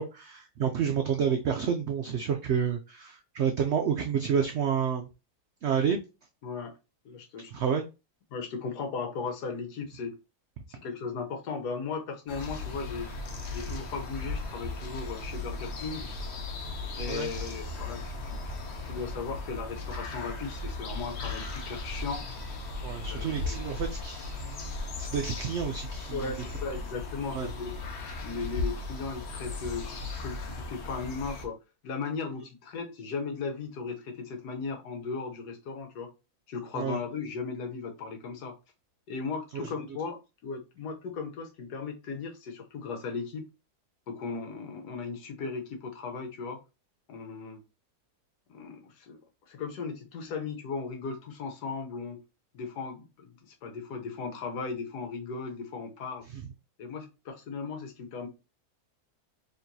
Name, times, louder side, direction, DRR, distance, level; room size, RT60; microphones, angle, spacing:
voice 1, 0.0-5.1 5.6-6.0 7.5-7.8 17.1-17.3 22.8-26.3 27.3-27.5 36.7-37.0 39.5-39.7 56.3-56.4, right 7 dB, 85° right, 0.6 m, -29 dB
voice 2, 7.0-7.5 8.3-10.2 10.7-13.1 13.5-16.1 16.9-18.4 18.8-22.2 23.1-23.6 26.1-27.7 28.2-31.6 31.8-36.1 36.5-38.6 39.1-43.5 44.1-46.6 47.1-47.6 48.5-49.2 49.5-52.2 52.5-56.3 56.8-58.3, left 4 dB, 80° left, 1.4 m, -37 dB
sound 1, 12.3-31.5, left 3 dB, 55° left, 0.9 m, -37 dB
4.5 x 3.1 x 2.6 m
omnidirectional pair, 1.7 m